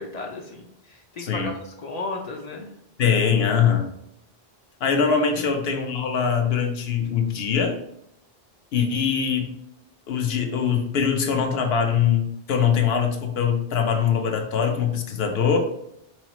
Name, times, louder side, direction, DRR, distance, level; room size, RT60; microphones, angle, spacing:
voice 1, 0.0-2.7 5.4-5.6, left 2 dB, 50° left, 1 dB, 0.5 m, -35 dB
voice 2, 1.2-1.5 3.0-3.9 4.8-7.8 8.7-9.5 10.1-15.6, left 7 dB, 75° left, 4 dB, 0.9 m, -22 dB
3.8 x 3.0 x 2.9 m, 0.77 s
omnidirectional pair, 1.0 m